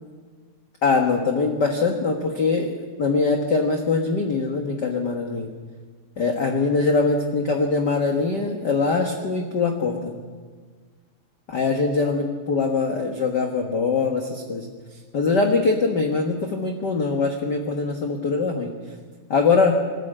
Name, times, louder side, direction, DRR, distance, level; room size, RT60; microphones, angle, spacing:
voice 1, 0.8-5.5 6.2-10.1 11.5-14.7 15.1-18.7 19.3-19.8, left 4 dB, 45° left, 4 dB, 1.5 m, -22 dB
21.5 x 13.5 x 8.8 m, 1.6 s
omnidirectional pair, 3.4 m